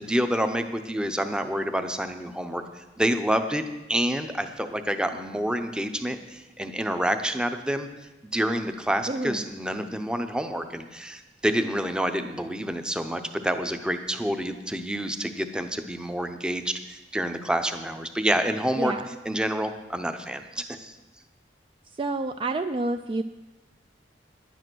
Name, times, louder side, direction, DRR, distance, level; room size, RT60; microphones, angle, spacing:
voice 1, 0.0-3.6 3.9-7.9 8.3-20.9, equal, 5° right, 8 dB, 0.7 m, -28 dB
voice 2, 9.1-9.4 18.8-19.1 22.0-23.2, right 2 dB, 30° right, 8 dB, 0.3 m, -28 dB
10.5 x 9.2 x 6.2 m, 1.1 s
head